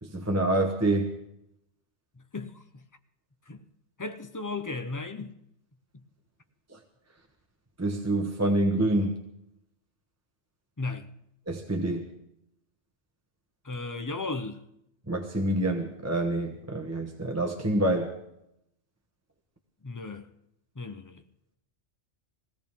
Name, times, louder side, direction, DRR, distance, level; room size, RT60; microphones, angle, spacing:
voice 1, 0.0-1.1 6.7-6.8 7.8-9.2 11.5-12.0 15.1-18.1, right 1 dB, 15° right, 1.0 m, -27 dB
voice 2, 2.3-2.8 3.5-3.6 4.0-5.3 5.9-6.0 10.8-11.1 13.6-14.6 19.8-20.3 20.8-21.2, left 3 dB, 20° left, 0.6 m, -35 dB
20.5 x 16.5 x 3.6 m
omnidirectional pair, 1.2 m